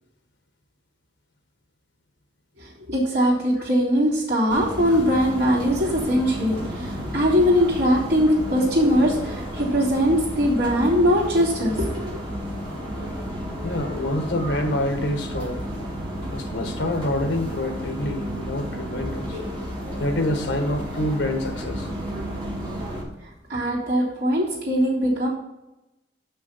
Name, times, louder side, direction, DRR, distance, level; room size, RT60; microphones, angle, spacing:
voice 1, 2.9-12.1 23.5-25.3, equal, 60° right, -5 dB, 3.1 m, -21 dB
sound 1, 4.5-23.0, equal, 25° right, 3.1 m, -32 dB
voice 2, 13.6-15.7 16.3-19.4 20.0-21.9 24.0-24.1, left 1 dB, 80° left, 6 dB, 1.4 m, -27 dB
6.4 x 6.3 x 5.6 m, 0.95 s
head